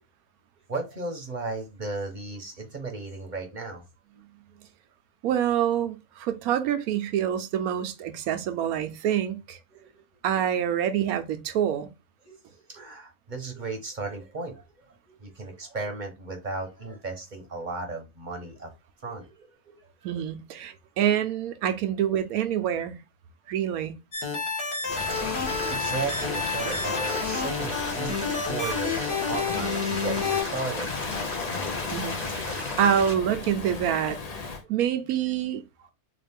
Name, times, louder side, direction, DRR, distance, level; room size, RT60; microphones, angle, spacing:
voice 1, 0.7-3.8 9.7-9.9 12.3-14.6 15.1-18.7 19.0-19.8 25.6-30.9 34.6-34.7, right 3 dB, 40° right, 0.9 m, -35 dB
voice 2, 5.2-9.6 10.2-11.9 20.0-23.0 23.5-23.9 31.9-34.2 34.7-35.6, right 9 dB, 75° right, 1.1 m, -26 dB
sound 1, 24.1-30.4, left 4 dB, 75° left, 1.5 m, -30 dB
Waves surf, 24.8-34.6, left 4 dB, 55° left, 0.4 m, -36 dB
sound 2, 24.9-33.1, left 2 dB, 30° left, 1.0 m, -35 dB
3.9 x 2.4 x 3.4 m
omnidirectional pair, 1.5 m